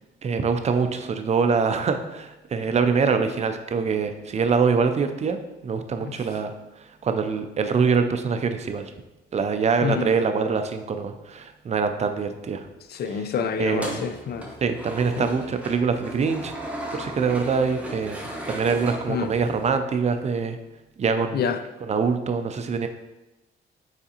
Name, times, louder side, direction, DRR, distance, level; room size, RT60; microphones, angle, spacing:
voice 1, 0.2-5.4 5.6-6.5 7.0-8.9 9.3-12.7 13.6-14.0 14.6-16.5 16.9-20.6 21.0-21.4 21.8-22.9, right 5 dB, 35° right, 7 dB, 0.4 m, -24 dB
voice 2, 9.8-10.1 12.9-14.5 15.2-15.3 19.1-19.3 21.3-21.6, left 7 dB, 55° left, 8 dB, 0.4 m, -27 dB
sound 1, 13.6-19.7, right 1 dB, 5° right, 0.9 m, -36 dB
4.9 x 3.4 x 2.8 m, 1.0 s
cardioid pair, 90°, 20 cm